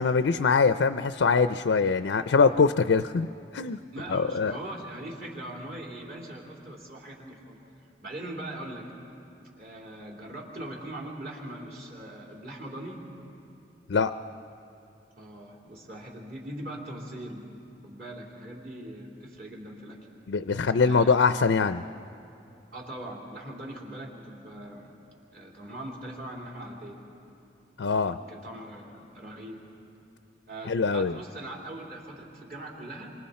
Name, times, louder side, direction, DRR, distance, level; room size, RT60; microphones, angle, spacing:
voice 1, 0.0-3.3 3.5-3.8 4.1-4.5 13.9-14.1 20.3-21.8 27.8-28.1 30.7-31.2, left 4 dB, 80° left, 11 dB, 0.5 m, -23 dB
voice 2, 3.9-7.6 8.0-8.9 9.6-13.1 15.2-17.5 17.8-20.0 20.8-21.1 22.7-24.9 25.3-27.0 27.9-29.6 30.5-33.1, right 1 dB, 55° right, -2 dB, 3.7 m, -41 dB
29.5 x 25.0 x 4.3 m, 2.8 s
head